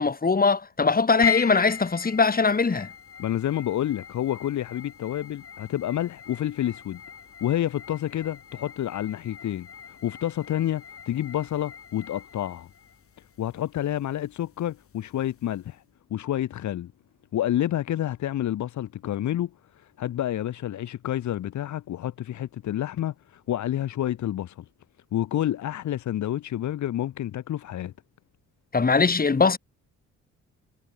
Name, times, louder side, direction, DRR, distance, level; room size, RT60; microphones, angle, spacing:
voice 1, 0.0-2.9 28.7-29.6, left 4 dB, 30° left, 5.7 m, -21 dB
sound 1, 1.2-15.7, left 7 dB, 50° left, 6.5 m, -39 dB
voice 2, 3.2-7.0 7.4-12.7 13.4-15.8 16.1-16.9 17.3-19.5 20.0-24.6 25.1-27.9, left 12 dB, 70° left, 2.4 m, -29 dB
cardioid pair, 90°, 30 cm